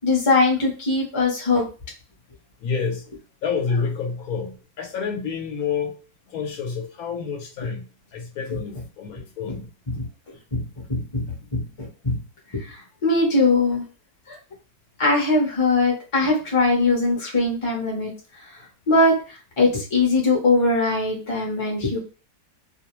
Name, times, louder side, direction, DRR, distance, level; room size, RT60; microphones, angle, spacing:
voice 1, 0.0-1.6 9.9-10.0 10.5-10.6 10.9-11.2 11.5-11.6 12.0-12.2 12.5-12.6 13.0-13.8 14.3-14.4 15.0-18.1 18.9-19.1 19.6-22.0, left 3 dB, 30° left, 0.6 m, -20 dB
voice 2, 2.6-3.0 3.4-6.0 6.3-9.7, left 5 dB, 75° left, 1.0 m, -28 dB
2.5 x 2.0 x 2.9 m
omnidirectional pair, 1.6 m